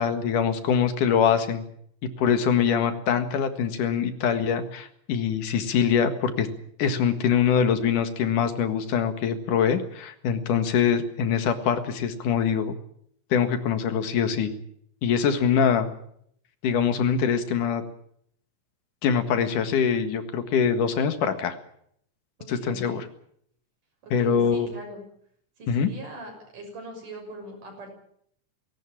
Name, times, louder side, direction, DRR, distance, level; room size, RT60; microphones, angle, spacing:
voice 1, 0.0-1.6 2.0-6.5 6.8-12.7 13.3-14.5 15.0-15.9 16.6-17.8 19.0-21.6 22.5-23.1 24.1-24.7 25.7-25.9, left 7 dB, 80° left, 9 dB, 3.3 m, -23 dB
voice 2, 2.5-2.8 22.4-23.0 24.0-25.0 25.6-27.9, right 1 dB, 85° right, 3 dB, 7.9 m, -41 dB
19.5 x 17.5 x 8.7 m, 0.68 s
omnidirectional pair, 3.6 m